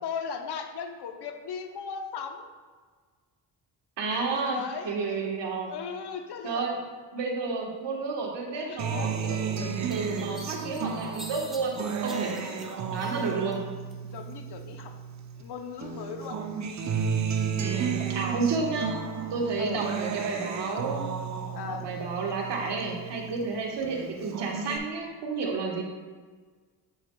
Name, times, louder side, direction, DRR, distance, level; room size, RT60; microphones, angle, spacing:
voice 1, 0.0-2.5 4.4-5.2 5.7-6.7 8.6-9.1 9.6-9.7 10.8-10.9 12.3-12.7 13.2-13.5 14.0-15.0 15.4-16.4 17.9-18.2 19.6-19.8 21.5-21.9, left 6 dB, 65° left, 6 dB, 0.8 m, -38 dB
voice 2, 4.0-5.7 6.4-6.8 7.1-11.7 12.0-12.4 12.9-13.6 17.6-18.9 19.3-21.1 21.6-25.8, right 4 dB, 70° right, 0 dB, 1.3 m, -31 dB
Acoustic guitar, 8.8-15.4 15.8-23.4 23.8-24.8, right 6 dB, 40° right, 0.6 m, -33 dB
sound 1, 9.9-13.6 13.9-14.7, equal, ahead, 0.9 m, -46 dB
7.6 x 6.3 x 2.2 m, 1.5 s
cardioid pair, 70°, 44 cm